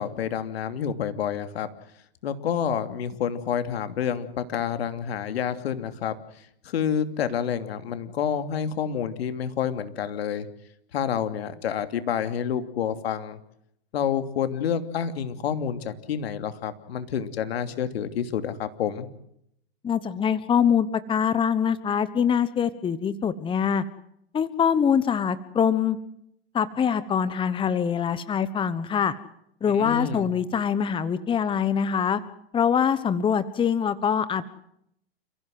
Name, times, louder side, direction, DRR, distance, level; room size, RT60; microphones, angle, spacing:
voice 1, 0.0-1.7 2.2-6.1 6.6-10.5 10.9-13.4 13.9-19.1 29.7-30.3, left 8 dB, 75° left, 9 dB, 3.0 m, -28 dB
voice 2, 19.8-23.8 24.3-26.0 26.5-29.1 29.6-32.2 32.5-34.5, left 7 dB, 15° left, 14 dB, 1.3 m, -24 dB
30.0 x 16.0 x 7.9 m, 0.74 s
hypercardioid pair, 125°, 31 cm